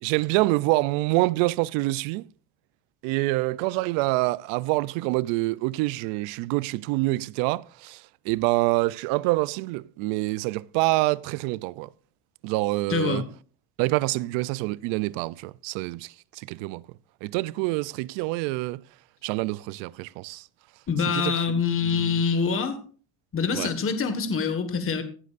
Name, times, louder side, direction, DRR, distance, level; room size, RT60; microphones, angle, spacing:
voice 1, 0.0-2.3 3.0-11.9 12.4-13.2 13.8-16.8 17.2-18.8 19.2-20.4 21.1-22.2 23.5-23.7, right 21 dB, 85° right, 0.6 m, -26 dB
voice 2, 12.9-13.2 20.9-22.8 23.3-25.0, left 5 dB, 30° left, 1.6 m, -25 dB
16.0 x 12.0 x 2.5 m
cardioid pair, 125°, 44 cm